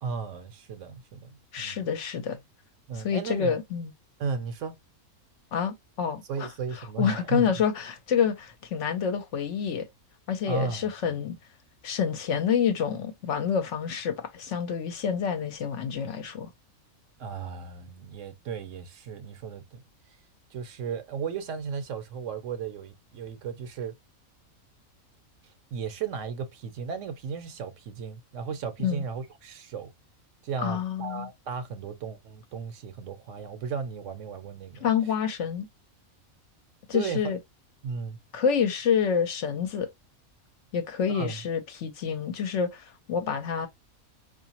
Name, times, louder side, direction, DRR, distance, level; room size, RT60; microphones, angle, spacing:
voice 1, 0.0-1.8 2.9-3.6 4.2-4.7 6.3-7.5 10.5-11.2 17.2-19.8 20.5-23.9 25.7-29.9 30.4-34.9 36.9-37.3 37.8-38.2 41.1-41.4, right 6 dB, 65° right, 1.0 m, -35 dB
voice 2, 1.5-2.4 2.9-3.9 5.5-6.5 6.7-9.8 10.3-11.4 11.8-16.5 28.8-29.0 30.6-31.3 34.8-35.7 36.9-37.4 38.3-39.9 40.7-43.7, left 7 dB, 65° left, 0.9 m, -28 dB
4.8 x 2.5 x 2.8 m
omnidirectional pair, 1.5 m